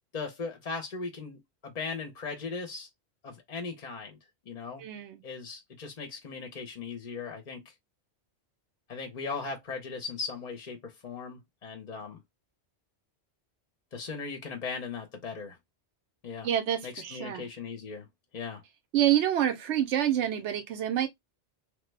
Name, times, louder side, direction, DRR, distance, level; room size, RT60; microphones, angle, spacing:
voice 1, 0.1-2.9 3.2-4.2 4.5-4.8 5.2-7.6 8.9-12.2 13.9-15.6 16.2-16.5 16.8-18.0 18.3-18.6, left 4 dB, 45° left, 0.6 m, -38 dB
voice 2, 4.8-5.2 16.4-17.5 18.9-21.1, right 11 dB, 90° right, 0.9 m, -27 dB
3.1 x 2.1 x 3.2 m
omnidirectional pair, 1.1 m